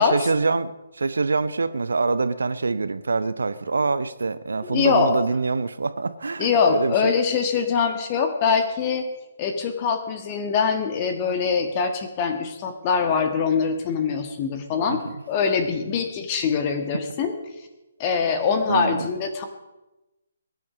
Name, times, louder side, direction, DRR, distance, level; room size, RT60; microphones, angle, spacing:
voice 1, 0.0-6.9 14.9-15.1 18.7-19.1, right 4 dB, 70° right, 13 dB, 0.8 m, -25 dB
voice 2, 4.7-5.2 6.4-9.1 9.4-15.0 15.3-17.3 18.0-19.4, left 6 dB, 30° left, 6 dB, 1.6 m, -23 dB
22.0 x 9.4 x 5.2 m, 1.0 s
figure-of-eight pair, 135°, 0 cm